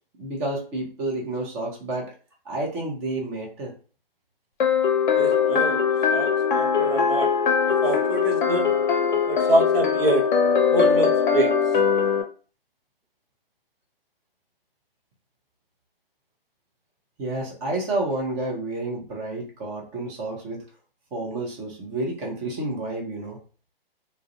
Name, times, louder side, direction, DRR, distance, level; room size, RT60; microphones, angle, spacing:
voice 1, 0.2-2.1 2.4-3.7 17.2-20.6 21.1-23.4, right 2 dB, 20° right, -1 dB, 0.7 m, -30 dB
sound 1, 4.6-12.2, left 6 dB, 55° left, 0.6 m, -21 dB
voice 2, 5.1-5.8 6.1-7.3 7.7-8.7 9.3-10.3 10.7-11.5, right 2 dB, 75° right, 3 dB, 0.8 m, -26 dB
2.3 x 2.1 x 2.6 m, 0.38 s
figure-of-eight pair, 135°, 29 cm